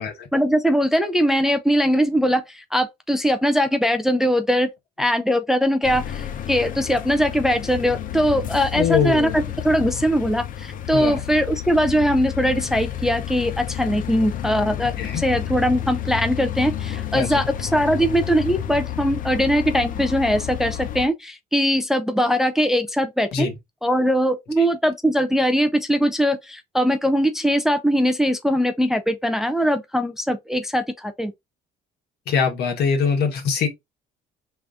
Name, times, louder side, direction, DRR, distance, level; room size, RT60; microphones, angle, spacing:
voice 1, 0.3-4.7 5.0-23.5 23.8-31.3, equal, ahead, 0.5 m, -21 dB
sound 1, 5.8-21.1, left 11 dB, 50° left, 0.6 m, -30 dB
voice 2, 8.7-9.4 10.9-11.2 15.0-15.3 17.1-17.5 23.3-23.6 24.6-24.7 32.3-33.7, left 6 dB, 70° left, 1.3 m, -22 dB
3.5 x 2.5 x 3.5 m
cardioid pair, 110°, 17 cm